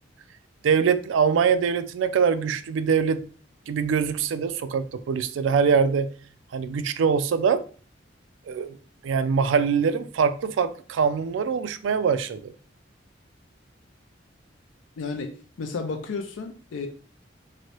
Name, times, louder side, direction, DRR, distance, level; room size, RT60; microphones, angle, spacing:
voice 1, 0.6-3.3 3.7-6.1 6.5-7.6 8.5-8.8 9.0-12.5, right 6 dB, 80° right, 0.3 m, -23 dB
voice 2, 15.0-15.3 15.6-16.9, left 4 dB, 85° left, 0.4 m, -32 dB
3.0 x 2.6 x 2.9 m
head